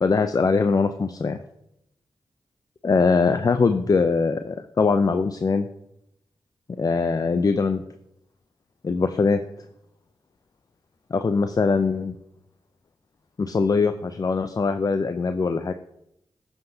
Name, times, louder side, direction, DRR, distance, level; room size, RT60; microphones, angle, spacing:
voice 1, 0.0-1.4 2.8-5.7 6.8-7.8 8.8-9.4 11.1-12.1 13.4-15.7, left 4 dB, 40° left, 9 dB, 0.5 m, -22 dB
13.0 x 5.8 x 2.7 m, 0.79 s
supercardioid pair, 40°, 10 cm